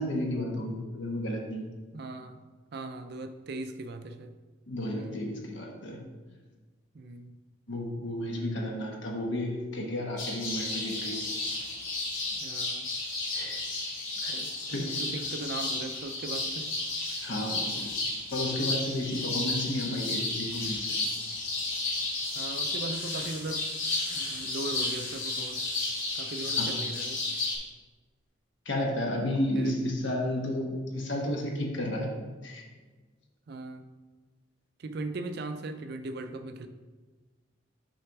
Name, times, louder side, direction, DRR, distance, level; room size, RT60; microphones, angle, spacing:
voice 1, 0.0-1.7 4.7-6.0 7.7-11.3 13.3-13.6 14.2-14.4 14.7-15.0 17.2-17.9 18.3-21.0 22.3-22.4 26.5-26.8 28.6-32.1 32.4-32.6, left 1 dB, 65° left, 1 dB, 1.2 m, -32 dB
voice 2, 1.9-2.4 2.7-4.3 5.0-5.2 6.9-7.3 12.4-12.9 14.3-16.7 22.4-23.7 24.1-25.6 26.1-27.2 29.5-29.8 33.5-33.9 34.8-36.7, right 2 dB, 50° right, 9 dB, 0.4 m, -39 dB
sound 1, 10.2-27.6, left 2 dB, 85° left, 2.1 m, -33 dB
6.3 x 3.4 x 5.8 m, 1.3 s
head